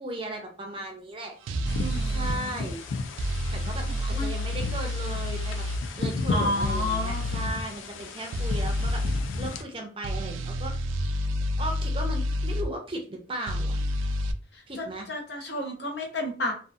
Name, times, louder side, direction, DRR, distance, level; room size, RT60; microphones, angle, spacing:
voice 1, 0.0-1.4 2.0-2.8 3.5-5.7 6.0-9.0 9.4-10.9 11.6-13.8 14.7-15.1, right 1 dB, 25° right, 2 dB, 0.5 m, -36 dB
sound 1, 1.5-2.4 3.2-5.8 6.6-7.5 8.3-9.2 10.0-12.7 13.5-14.3, left 1 dB, 85° right, 0.3 m, -29 dB
sound 2, 1.7-9.6, left 3 dB, 80° left, 0.4 m, -33 dB
voice 2, 1.7-2.6 3.9-4.3 6.3-7.2 14.5-16.5, left 1 dB, 60° left, 1 dB, 0.8 m, -32 dB
2.7 x 2.4 x 2.3 m, 0.40 s
head